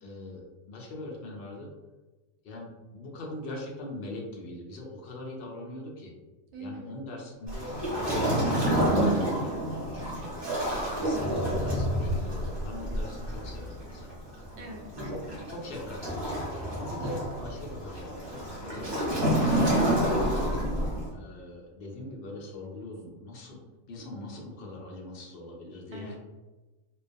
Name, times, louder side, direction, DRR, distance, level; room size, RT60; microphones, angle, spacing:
voice 1, 0.0-1.7 2.4-6.1 6.6-10.7 11.0-14.1 15.1-16.5 16.7-18.9 19.7-23.6 23.9-26.2, left 1 dB, 65° left, -2 dB, 0.6 m, -42 dB
voice 2, 6.5-6.9 11.0-11.5 14.6-15.0 16.9-17.4 25.9-26.2, right 1 dB, 65° right, 1 dB, 0.7 m, -44 dB
Waves surf, 7.5-21.1, right 1 dB, 25° right, 0.6 m, -29 dB
2.3 x 2.2 x 2.5 m, 1.2 s
omnidirectional pair, 1.4 m